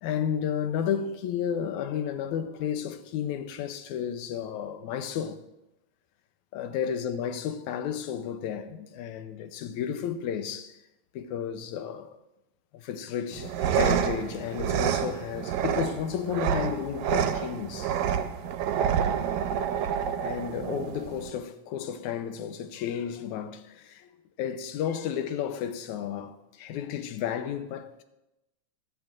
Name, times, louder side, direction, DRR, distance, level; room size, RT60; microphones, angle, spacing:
voice 1, 0.0-5.4 6.5-10.8 11.1-12.2 12.7-18.0 20.2-24.1 24.4-28.0, left 8 dB, 85° left, 2.1 m, -32 dB
sound 1, 13.3-21.3, right 8 dB, 85° right, 2.0 m, -28 dB
25.0 x 9.2 x 2.5 m
omnidirectional pair, 3.4 m